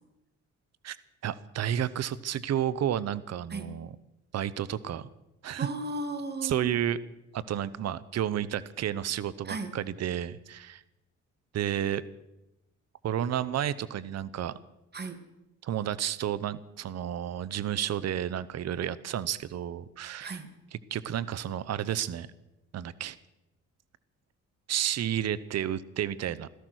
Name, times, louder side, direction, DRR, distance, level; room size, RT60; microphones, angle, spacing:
voice 1, 1.2-3.9 4.3-5.1 5.4-5.7 6.4-7.0 7.3-10.8 11.5-12.0 13.0-14.5 15.6-20.4 20.9-22.3 22.7-23.2 24.7-26.5, right 10 dB, 60° right, 18 dB, 0.8 m, -31 dB
voice 2, 5.6-6.8 9.4-9.8 14.9-15.2 20.2-20.5, right 2 dB, 35° right, 10 dB, 2.0 m, -36 dB
16.5 x 13.5 x 6.3 m, 0.93 s
cardioid pair, 90°, 30 cm